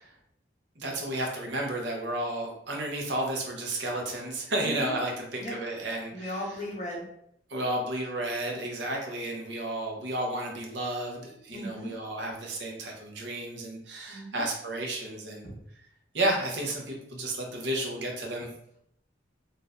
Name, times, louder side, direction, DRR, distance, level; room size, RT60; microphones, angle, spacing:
voice 1, 0.8-6.3 7.5-15.5 16.1-18.5, right 1 dB, 70° right, 0 dB, 0.8 m, -32 dB
voice 2, 4.6-5.0 5.4-5.5 6.1-7.1 11.5-11.9 14.1-14.5 15.4-15.6, equal, 40° left, -4 dB, 1.0 m, -37 dB
4.1 x 2.5 x 2.4 m, 0.73 s
head